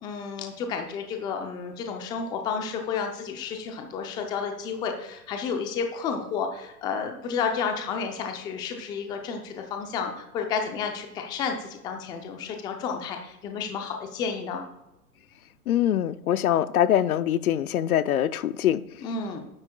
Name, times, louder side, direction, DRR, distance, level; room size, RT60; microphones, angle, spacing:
voice 1, 0.0-14.6 19.0-19.4, left 6 dB, 10° left, 0.5 m, -31 dB
voice 2, 15.7-18.8, left 11 dB, 65° left, 0.6 m, -23 dB
11.5 x 9.6 x 2.3 m
hypercardioid pair, 130°, 47 cm